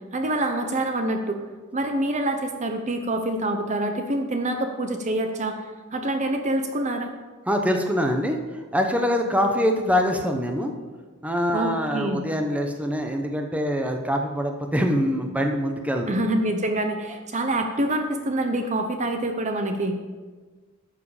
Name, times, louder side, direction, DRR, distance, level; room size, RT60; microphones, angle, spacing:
voice 1, 0.1-1.4 1.7-5.6 5.9-7.1 11.5-12.2 16.1-20.0, right 1 dB, 35° right, 6 dB, 0.8 m, -26 dB
voice 2, 7.5-10.7 11.2-16.2, equal, 5° right, 4 dB, 0.9 m, -24 dB
12.0 x 7.6 x 4.9 m, 1.4 s
head